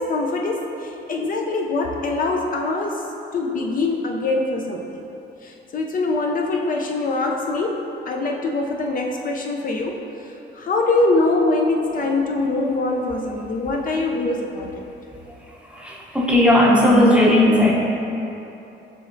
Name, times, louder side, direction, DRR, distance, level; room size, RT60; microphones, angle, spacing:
voice 1, 0.0-3.0 3.3-5.1 5.4-10.0 10.5-14.8, left 2 dB, 45° left, 0 dB, 0.4 m, -23 dB
voice 2, 15.1-17.7, left 1 dB, 5° right, -5 dB, 0.7 m, -17 dB
6.7 x 3.1 x 2.5 m, 3.0 s
cardioid pair, 90°, 20 cm